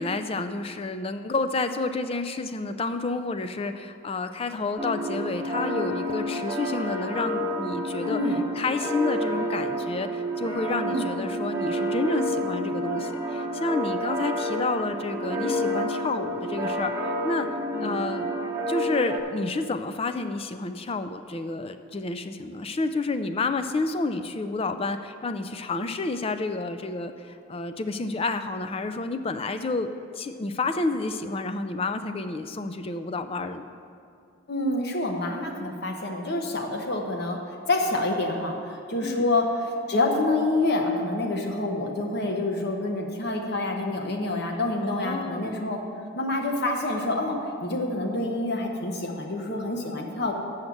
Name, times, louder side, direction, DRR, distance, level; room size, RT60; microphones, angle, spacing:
voice 1, 0.0-8.2 8.5-17.5 17.8-18.3 18.7-29.9 30.2-33.7 39.0-39.3 44.8-45.6, left 3 dB, 25° left, 10 dB, 0.3 m, -30 dB
sound 1, 4.8-19.2, equal, 10° right, 0.7 m, -29 dB
voice 2, 8.1-8.4 10.8-11.1 17.7-18.0 34.5-37.4 37.7-45.8 46.1-50.3, left 2 dB, 50° left, 2 dB, 1.0 m, -27 dB
7.1 x 6.4 x 7.6 m, 2.5 s
head